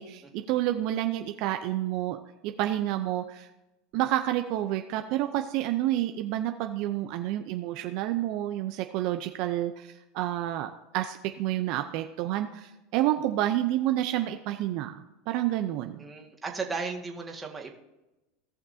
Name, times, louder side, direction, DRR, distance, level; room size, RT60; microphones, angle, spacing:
voice 1, 0.0-3.5 3.9-16.0, right 13 dB, 60° right, 6 dB, 0.6 m, -29 dB
voice 2, 16.0-17.7, right 4 dB, 15° right, 0 dB, 1.8 m, -35 dB
17.0 x 5.9 x 2.7 m, 1.0 s
supercardioid pair, 110°, 0 cm